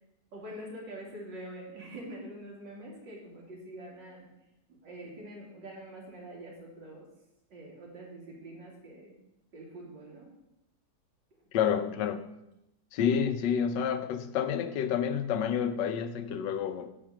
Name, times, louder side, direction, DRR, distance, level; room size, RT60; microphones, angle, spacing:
voice 1, 0.3-4.3 4.7-7.1 7.5-9.1 9.5-10.3, right 1 dB, 80° right, 3.2 m, -45 dB
voice 2, 11.5-12.3 12.9-16.9, left 8 dB, 80° left, 1.4 m, -29 dB
8.7 x 5.9 x 6.3 m
omnidirectional pair, 1.9 m